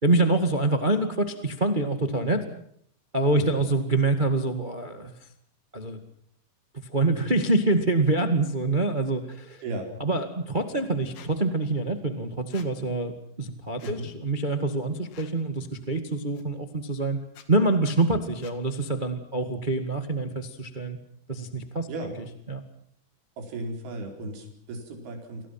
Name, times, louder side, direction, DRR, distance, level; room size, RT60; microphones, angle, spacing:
voice 1, 0.0-2.4 3.1-5.1 5.7-6.0 6.9-9.6 10.0-17.2 17.5-21.0 21.3-21.9 22.5-22.6, right 2 dB, 30° right, 7 dB, 0.8 m, -25 dB
Squeak, 11.1-11.3 12.5-12.7 13.8-14.0 15.1-15.4 16.3-16.4 17.3-17.5 18.4-18.6, left 8 dB, 75° left, 4.1 m, -49 dB
voice 2, 23.4-25.5, right 2 dB, 70° right, 2 dB, 6.4 m, -35 dB
30.0 x 24.0 x 6.0 m, 0.65 s
omnidirectional pair, 4.6 m